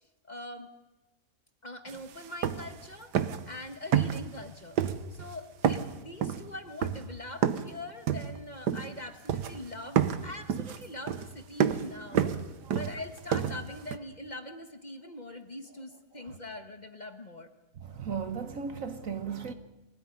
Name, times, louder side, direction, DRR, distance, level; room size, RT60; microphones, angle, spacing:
voice 1, 0.2-0.7 1.6-3.2 3.5-4.8 5.1-12.4 12.7-17.5, left 1 dB, 30° left, 1.4 m, -43 dB
sound 1, 1.9-2.0 2.2-2.8 3.1-3.5 3.9-4.5 4.8-5.3 5.6-7.7 8.1-9.0 9.3-9.7 10.0-14.0, right 8 dB, 90° right, 1.6 m, -29 dB
voice 2, 17.9-19.5, right 6 dB, 55° right, 1.4 m, -36 dB
24.5 x 17.0 x 9.9 m
omnidirectional pair, 1.7 m